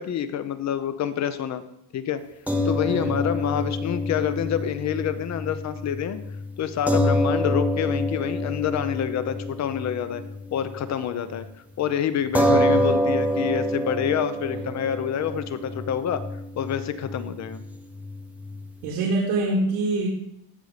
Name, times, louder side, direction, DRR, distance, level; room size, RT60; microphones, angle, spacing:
voice 1, 0.0-1.6 1.9-2.2 2.6-6.2 6.6-10.2 10.5-11.5 11.8-16.2 16.6-17.6, left 9 dB, 35° left, 12 dB, 0.7 m, -27 dB
sound 1, 2.5-11.0 11.3-11.5 12.3-18.9, left 1 dB, 5° right, 0.7 m, -27 dB
voice 2, 2.9-3.2 12.4-12.7 18.8-20.1, right 2 dB, 75° right, -2 dB, 2.3 m, -25 dB
14.5 x 5.5 x 4.9 m, 0.76 s
cardioid pair, 155°, 49 cm